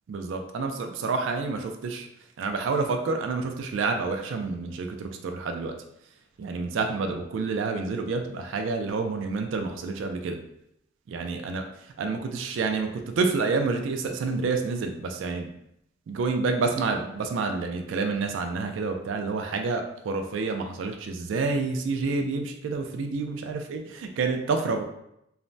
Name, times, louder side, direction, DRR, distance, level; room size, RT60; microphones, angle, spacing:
voice 1, 0.1-2.1 2.4-5.7 6.4-10.4 11.1-11.6 12.0-15.5 16.1-24.8, right 4 dB, 75° right, 5 dB, 0.3 m, -28 dB
3.2 x 2.0 x 2.6 m, 0.79 s
head